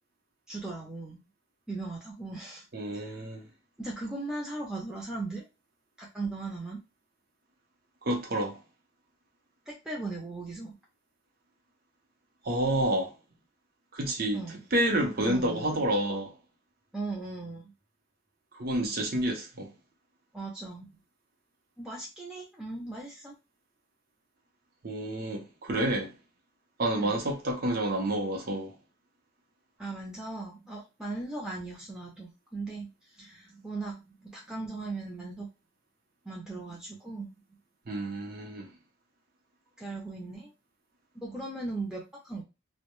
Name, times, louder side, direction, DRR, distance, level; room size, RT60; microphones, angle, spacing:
voice 1, 0.5-1.2 1.7-2.6 2.9-3.2 3.8-5.4 6.0-6.8 9.7-10.7 14.3-14.6 15.3-15.8 16.9-17.7 20.3-20.9 21.8-23.3 27.0-27.2 29.8-32.9 33.2-35.5 36.2-37.3 39.8-40.5 41.2-42.4, right 3 dB, 5° right, 0.5 m, -38 dB
voice 2, 2.7-3.4 8.0-8.6 12.4-13.1 13.9-14.4 14.7-16.3 18.6-19.7 24.8-26.1 26.8-28.7 37.9-38.7, right 1 dB, 55° right, 0.7 m, -29 dB
2.2 x 2.1 x 3.0 m
head